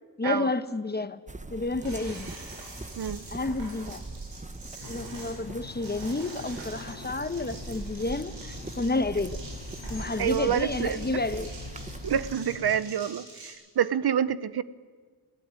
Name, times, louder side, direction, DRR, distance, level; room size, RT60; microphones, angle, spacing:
voice 1, 0.2-1.2 1.5-2.3 3.3-4.0 4.9-9.4 9.9-11.5, left 2 dB, 20° left, 12 dB, 1.1 m, -30 dB
sound 1, 1.3-12.3, right 2 dB, 15° right, 1.2 m, -41 dB
sound 2, 1.8-13.5, right 2 dB, 85° right, 7.6 m, -46 dB
sound 3, 4.8-12.8, left 8 dB, 60° left, 1.2 m, -46 dB
voice 2, 10.2-11.2 12.0-14.6, right 9 dB, 60° right, 15 dB, 0.9 m, -27 dB
21.0 x 16.5 x 9.7 m, 1.5 s
cardioid pair, 80°, 44 cm